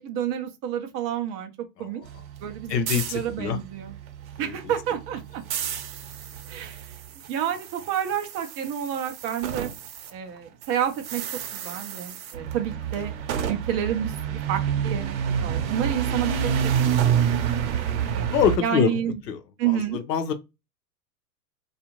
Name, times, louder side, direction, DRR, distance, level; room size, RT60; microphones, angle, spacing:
voice 1, 0.0-2.0 2.4-3.9 4.4-5.4 6.5-6.9 7.3-9.7 10.1-11.2 11.5-13.1 13.5-16.6 17.0-17.2 18.1-18.3 18.6-19.2 19.6-20.0, right 10 dB, 30° right, 0.5 m, -29 dB
sound 1, 2.0-10.1 10.4-18.6, right 8 dB, 60° right, 0.8 m, -29 dB
voice 2, 2.7-3.6 4.4-4.7 18.2-19.0 19.3-20.3, left 8 dB, 80° left, 0.8 m, -25 dB
2.5 x 2.4 x 2.9 m
hypercardioid pair, 105°, 48 cm